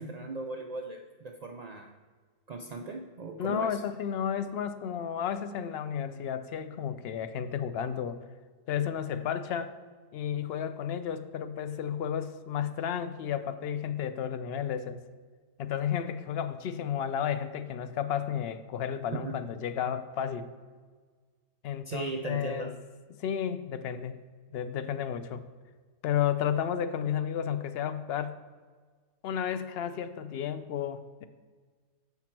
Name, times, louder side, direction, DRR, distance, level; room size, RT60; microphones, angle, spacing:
voice 1, 0.0-1.9 2.5-3.8 19.1-19.4 21.9-22.7, right 3 dB, 65° right, 2 dB, 0.4 m, -37 dB
voice 2, 3.4-8.2 8.7-9.8 10.1-15.0 15.6-20.5 21.6-22.7 23.1-24.2 24.5-25.4 26.0-28.4 29.2-31.2, left 8 dB, 65° left, 11 dB, 0.7 m, -32 dB
7.3 x 5.8 x 4.4 m, 1.5 s
omnidirectional pair, 1.4 m